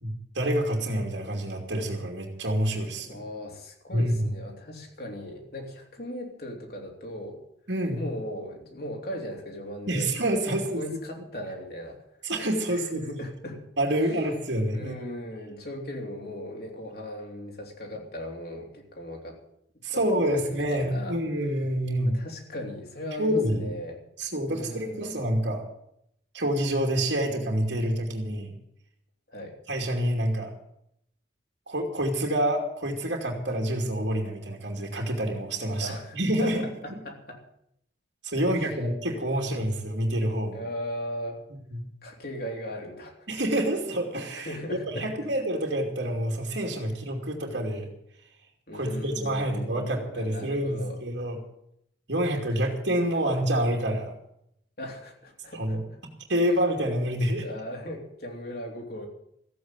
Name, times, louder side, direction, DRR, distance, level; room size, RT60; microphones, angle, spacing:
voice 1, 0.0-3.2 3.9-4.3 7.7-8.0 9.9-10.8 12.2-13.0 13.8-14.9 19.8-22.2 23.2-23.8 24.2-25.7 26.3-28.5 29.7-30.5 31.7-37.0 38.2-40.6 41.7-41.9 43.3-47.9 48.7-51.4 52.1-54.2 55.5-55.9 56.3-57.5, right 1 dB, 65° right, 1 dB, 2.8 m, -27 dB
voice 2, 3.1-7.4 7.9-10.1 10.5-12.0 12.7-13.7 14.7-19.4 19.9-21.2 22.1-24.0 24.5-25.2 29.3-29.6 35.8-36.5 36.8-37.4 38.3-38.4 40.5-41.4 42.0-43.2 44.4-45.1 48.7-51.0 54.8-55.8 57.4-59.1, left 1 dB, 55° left, 0 dB, 3.3 m, -38 dB
15.0 x 8.6 x 9.1 m, 0.75 s
head